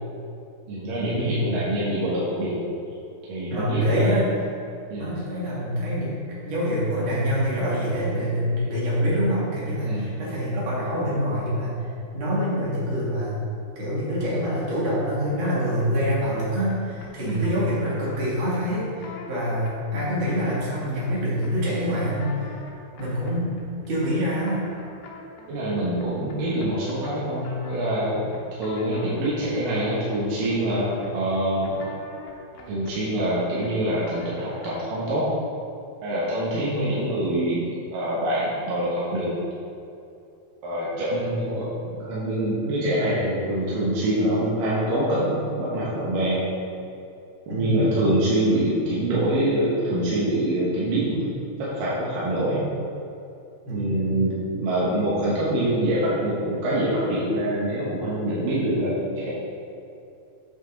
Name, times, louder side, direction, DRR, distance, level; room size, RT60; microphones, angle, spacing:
voice 1, 0.7-2.6 3.3-4.1 4.9-5.1 9.9-10.1 17.2-17.5 25.5-31.8 32.7-35.3 36.0-37.6 37.9-39.4 40.6-46.5 47.5-51.2 51.6-52.6 53.7-59.3, right 1 dB, 70° right, -8 dB, 2.8 m, -25 dB
voice 2, 3.5-4.3 5.0-6.1 6.4-11.7 12.1-13.3 13.6-22.5 23.0-23.5 23.9-24.7 36.5-36.9 47.5-47.9 53.7-54.2, equal, 40° right, -7 dB, 2.4 m, -25 dB
sound 1, 15.8-35.0, left 3 dB, 90° left, 2.9 m, -46 dB
8.8 x 6.0 x 3.9 m, 2.6 s
omnidirectional pair, 4.3 m